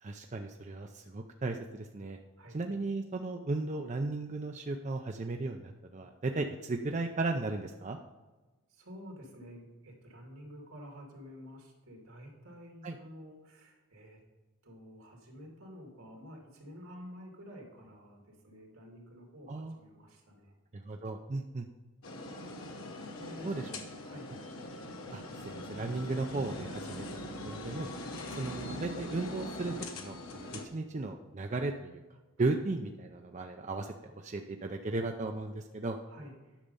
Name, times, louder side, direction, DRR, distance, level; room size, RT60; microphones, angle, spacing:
voice 1, 0.0-2.2 2.5-8.0 12.8-13.0 19.5-19.8 20.7-21.6 23.4-23.7 25.1-27.0 27.4-27.9 28.4-32.0 32.4-36.0, right 3 dB, 35° right, 4 dB, 0.5 m, -35 dB
voice 2, 8.7-14.2 14.6-20.5 23.2-23.5 24.0-24.3 26.9-27.1 27.9-28.1 36.1-36.6, equal, 80° right, 0 dB, 2.6 m, -50 dB
sound 1, 22.0-30.6, left 1 dB, 85° left, 1.3 m, -42 dB
10.0 x 6.5 x 5.4 m, 1.2 s
head